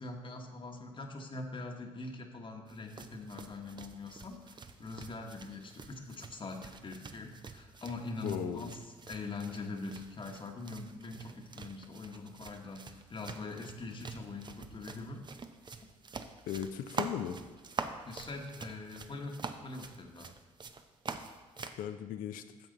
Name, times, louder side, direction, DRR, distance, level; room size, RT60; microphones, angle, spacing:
voice 1, 0.0-8.8 9.1-15.3 15.8-15.9 18.0-20.3, left 3 dB, 35° left, 3 dB, 1.3 m, -43 dB
sound 1, 2.7-21.8, right 4 dB, 30° right, 0.7 m, -46 dB
voice 2, 8.2-8.7 16.5-17.4 21.8-22.4, left 9 dB, 70° left, 10 dB, 0.7 m, -37 dB
10.5 x 7.0 x 3.9 m, 1.3 s
supercardioid pair, 60°, 15 cm